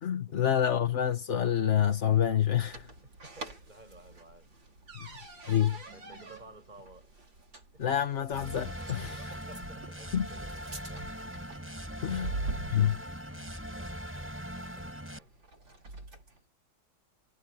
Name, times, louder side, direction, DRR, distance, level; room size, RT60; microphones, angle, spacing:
voice 1, 0.0-2.9 5.0-5.1 5.5-5.8 7.8-9.2 10.1-10.2 12.0-12.3 12.7-13.0, left 9 dB, 45° left, 1.3 m, -27 dB
sound 1, 1.4-16.4, right 2 dB, 80° right, 5.9 m, -45 dB
voice 2, 3.2-4.7 5.1-5.2 5.9-7.1 7.7-7.8 9.1-11.2 11.9-12.7 13.7-14.4 14.7-15.3, right 2 dB, 20° right, 7.9 m, -55 dB
sound 2, 8.3-15.2, equal, 5° right, 4.8 m, -41 dB
omnidirectional pair, 2.0 m